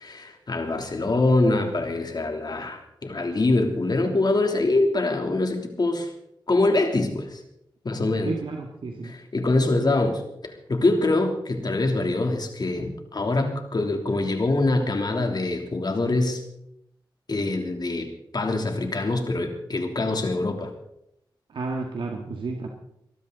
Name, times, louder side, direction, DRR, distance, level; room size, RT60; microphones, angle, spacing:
voice 1, 0.0-6.1 6.5-7.4 7.8-8.3 9.0-16.4 17.3-20.7, left 2 dB, 55° left, 4 dB, 3.2 m, -24 dB
voice 2, 8.3-9.1 21.5-22.7, right 3 dB, 85° right, 1 dB, 1.9 m, -31 dB
23.0 x 13.0 x 4.1 m, 0.78 s
cardioid pair, 55°, 9 cm